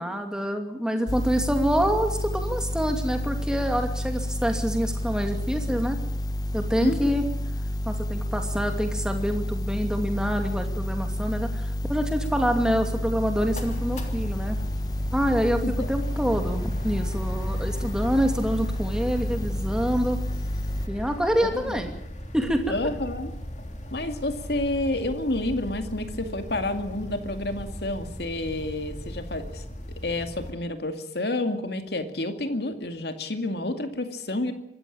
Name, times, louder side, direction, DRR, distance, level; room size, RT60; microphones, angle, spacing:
voice 1, 0.0-6.0 6.5-7.2 7.8-14.6 15.1-15.6 15.9-20.2 20.9-21.9 22.3-22.7, equal, 5° right, 5 dB, 2.5 m, -26 dB
sound 1, 1.1-20.9, left 1 dB, 20° left, 0.9 m, -30 dB
voice 2, 6.8-7.2 15.5-15.9 21.5-21.8 22.7-23.3 23.9-29.6 30.0-34.5, left 2 dB, 65° left, 7 dB, 2.3 m, -29 dB
sound 2, 13.3-30.5, equal, 40° left, 3.2 m, -38 dB
24.5 x 14.0 x 8.8 m, 0.76 s
head